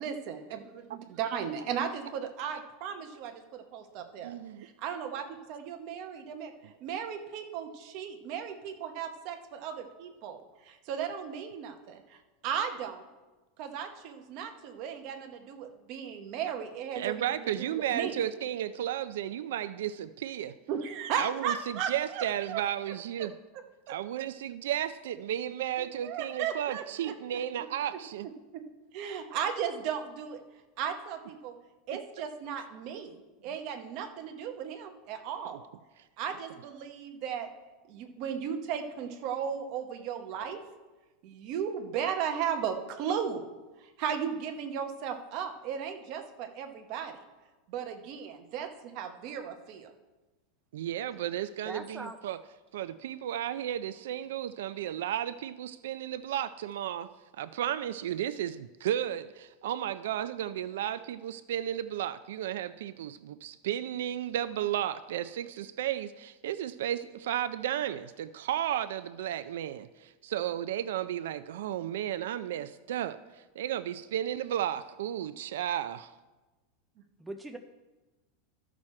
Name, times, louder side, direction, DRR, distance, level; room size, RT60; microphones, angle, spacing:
voice 1, 0.0-4.3 4.6-6.5 6.8-13.0 13.6-18.2 20.7-22.6 25.8-27.4 27.9-28.0 28.5-28.6 28.9-30.4 30.8-31.5 31.9-35.6 36.2-37.5 37.9-40.6 41.2-43.5 43.8-47.2 47.7-49.9, right 8 dB, 40° right, 5 dB, 0.9 m, -36 dB
voice 2, 4.2-4.7 16.9-20.5 21.1-23.3 23.9-28.3 35.4-35.6 50.7-52.4 52.7-57.1 57.4-76.1, right 11 dB, 80° right, 13 dB, 0.4 m, -33 dB
voice 3, 51.7-52.2 77.2-77.6, right 2 dB, 5° right, 5 dB, 0.4 m, -40 dB
13.0 x 6.2 x 4.3 m, 1.2 s
supercardioid pair, 175°, 0 cm